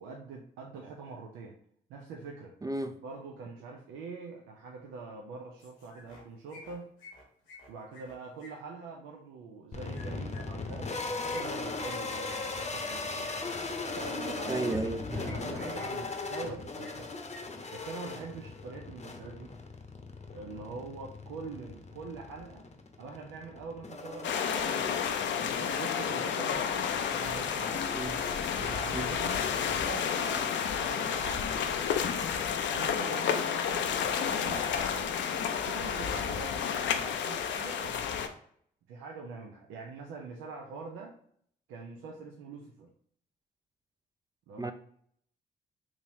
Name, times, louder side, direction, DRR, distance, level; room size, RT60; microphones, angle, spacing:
voice 1, 0.0-1.6 1.9-2.6 3.0-6.9 7.7-13.4 13.9-14.7 15.1-17.1 17.7-19.5 20.3-22.7 23.0-24.9 25.3-27.9 28.6-32.3 32.7-35.2 35.6-38.4 38.9-41.2 41.7-42.9 44.5-44.7, right 4 dB, 80° right, 0.5 m, -44 dB
voice 2, 2.6-3.0 14.5-15.2 27.9-28.2 28.9-29.2 44.6-44.7, right 2 dB, 20° right, 0.4 m, -33 dB
sound 1, 5.6-6.2 6.5-8.5 9.9-13.3 14.7-14.9 15.2-16.0 16.3-17.0 17.3-17.4 17.7-17.9, left 2 dB, 90° left, 1.2 m, -52 dB
sound 2, 9.7-28.9, left 3 dB, 35° left, 0.8 m, -39 dB
sound 3, 24.2-38.3, left 7 dB, 65° left, 0.5 m, -31 dB
3.6 x 3.0 x 2.7 m
supercardioid pair, 50°, 20 cm